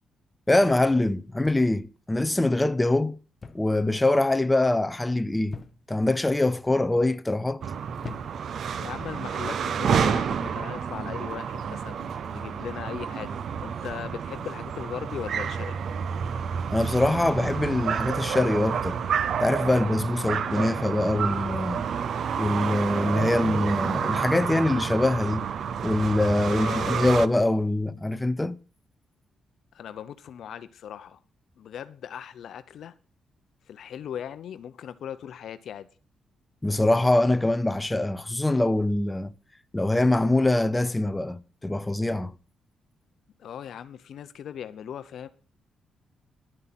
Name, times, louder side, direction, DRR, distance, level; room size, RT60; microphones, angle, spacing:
voice 1, 0.5-3.2 3.5-5.6 5.9-7.6 16.7-19.0 19.4-21.8 22.4-25.5 25.8-28.6 36.6-39.3 39.7-42.3, left 2 dB, 10° left, 0.6 m, -24 dB
sound 1, 1.4-2.0 3.4-3.8 4.1-4.5 5.5-6.1 6.8-7.2 8.0-8.6 9.6-9.8, left 4 dB, 30° left, 1.0 m, -43 dB
sound 2, 7.6-27.3, right 7 dB, 60° right, 0.6 m, -29 dB
voice 2, 8.8-15.7 26.5-27.1 29.7-31.2 31.6-33.0 33.7-35.9 43.4-45.3, left 9 dB, 70° left, 0.7 m, -38 dB
11.0 x 7.6 x 5.9 m
cardioid pair, 110°, 0 cm